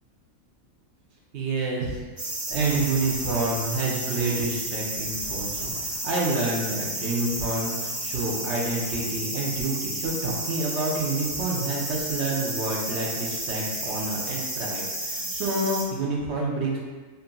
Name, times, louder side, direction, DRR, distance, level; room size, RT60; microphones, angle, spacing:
voice 1, 1.3-16.8, right 2 dB, 60° right, -3 dB, 0.9 m, -28 dB
sound 1, 2.2-15.8, right 1 dB, 30° right, 0.9 m, -32 dB
sound 2, 2.5-3.8 4.9-6.2, left 1 dB, 65° left, 1.6 m, -45 dB
5.6 x 2.5 x 2.2 m, 1.4 s
omnidirectional pair, 1.4 m